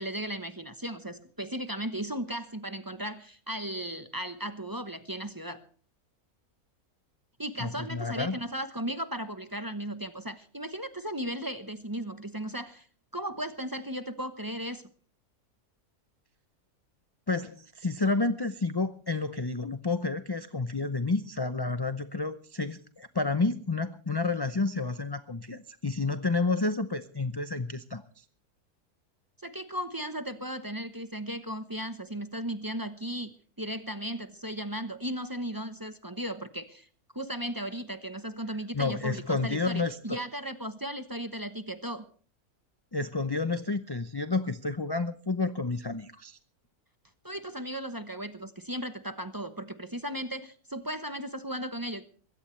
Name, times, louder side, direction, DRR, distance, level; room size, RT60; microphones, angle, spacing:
voice 1, 0.0-5.6 7.4-12.9 13.1-14.8 29.4-36.9 37.1-42.0 47.2-52.0, right 1 dB, 15° right, 10 dB, 0.9 m, -36 dB
voice 2, 7.6-8.4 17.3-28.0 38.7-40.2 42.9-46.4, left 3 dB, 30° left, 11 dB, 0.4 m, -30 dB
22.0 x 16.5 x 3.2 m, 0.42 s
omnidirectional pair, 1.6 m